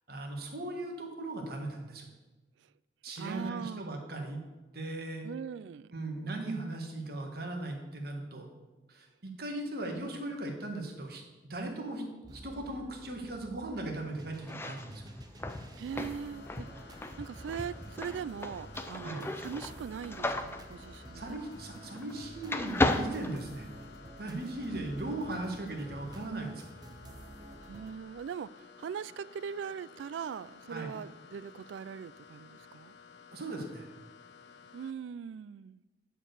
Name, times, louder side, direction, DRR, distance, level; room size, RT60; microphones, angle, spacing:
voice 1, 0.1-2.1 3.0-4.4 4.7-5.3 5.9-8.5 8.9-12.0 12.3-15.1 19.0-19.2 21.1-23.7 24.2-26.7 30.7-30.9 33.3-33.9, right 2 dB, 55° right, 1.5 m, -38 dB
voice 2, 3.2-4.0 5.2-5.9 15.8-21.4 24.7-24.8 25.4-25.5 27.7-32.9 34.7-35.8, right 7 dB, 85° right, 0.3 m, -41 dB
sound 1, 12.2-27.9, right 1 dB, 20° right, 0.6 m, -50 dB
sound 2, 14.4-22.2 22.5-24.1, left 2 dB, 15° left, 0.4 m, -35 dB
sound 3, 16.0-34.9, left 6 dB, 80° left, 0.6 m, -55 dB
10.0 x 4.6 x 6.5 m
head